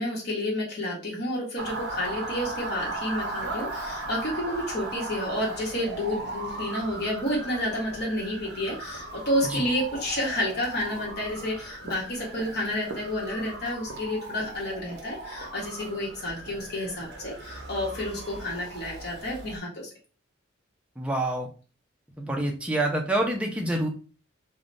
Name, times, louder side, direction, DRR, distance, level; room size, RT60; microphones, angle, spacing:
voice 1, 0.0-19.9, left 1 dB, 50° left, -4 dB, 0.9 m, -30 dB
Motor vehicle (road) / Siren, 1.6-19.6, right 2 dB, 55° right, 0.6 m, -37 dB
voice 2, 21.0-21.5 22.2-23.9, right 1 dB, 5° right, 1 dB, 0.4 m, -27 dB
3.2 x 2.1 x 2.5 m, 0.36 s
head